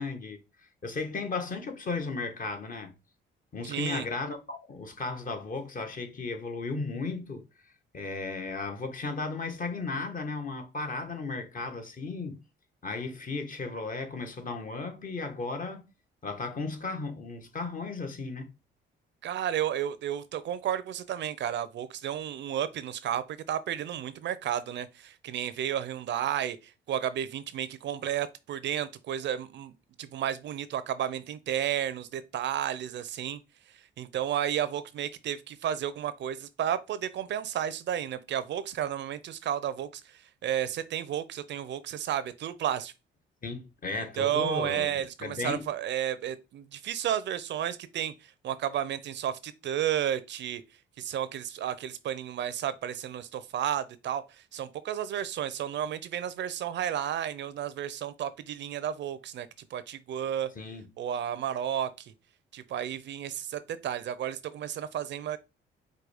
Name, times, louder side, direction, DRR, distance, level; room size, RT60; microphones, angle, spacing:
voice 1, 0.0-2.9 3.5-7.4 7.9-12.4 12.8-15.9 16.2-18.5 28.0-28.1 43.4-45.7 60.5-60.9, left 3 dB, 45° left, 1.2 m, -35 dB
voice 2, 3.7-4.1 19.2-29.7 30.0-33.4 33.7-42.9 44.0-50.6 51.0-60.5 61.0-62.1 62.5-65.4, right 10 dB, 65° right, 0.5 m, -32 dB
4.8 x 2.3 x 4.8 m
cardioid pair, 90°, 20 cm